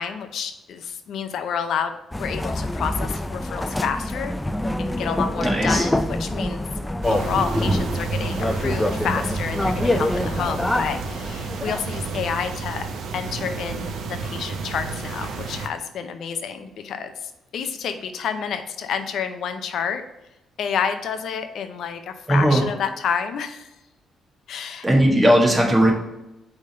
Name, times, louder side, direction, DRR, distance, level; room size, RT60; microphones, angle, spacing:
voice 1, 0.0-4.4 4.8-6.6 7.0-12.9 13.1-17.1 17.5-20.0 20.6-23.7 24.5-24.8, left 7 dB, 70° left, 8 dB, 0.5 m, -29 dB
sound 1, 2.1-11.9, left 1 dB, 10° left, 0.4 m, -26 dB
voice 2, 5.4-5.9 22.3-22.6 24.8-25.9, right 1 dB, 15° right, -1 dB, 1.6 m, -17 dB
sound 2, 7.0-15.7, right 4 dB, 70° right, 0.7 m, -30 dB
5.2 x 3.5 x 5.4 m, 0.95 s
cardioid pair, 90°, 0 cm